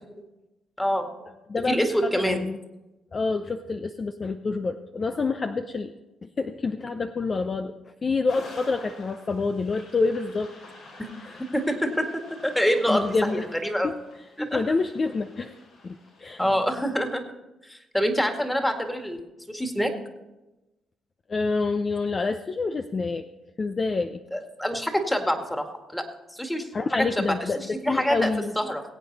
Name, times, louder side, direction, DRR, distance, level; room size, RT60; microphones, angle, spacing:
voice 1, 0.8-1.1 1.7-2.5 11.0-11.1 11.5-12.1 12.4-13.0 13.3-13.9 14.4-14.6 16.4-17.2 17.7-19.2 19.5-19.9 24.3-25.7 25.9-26.1 26.3-27.4 27.8-28.3 28.6-28.8, equal, 5° left, 4 dB, 2.0 m, -25 dB
voice 2, 1.5-2.6 3.1-5.9 6.2-7.7 8.0-10.5 11.2-11.4 12.9-13.5 13.8-14.0 14.5-15.5 15.8-16.4 21.3-23.3 23.6-24.2 26.7-28.5, left 4 dB, 35° left, 7 dB, 0.6 m, -27 dB
sound 1, 8.3-16.9, left 2 dB, 75° left, 5.6 m, -48 dB
21.0 x 8.6 x 4.1 m, 1.0 s
cardioid pair, 90°, 0 cm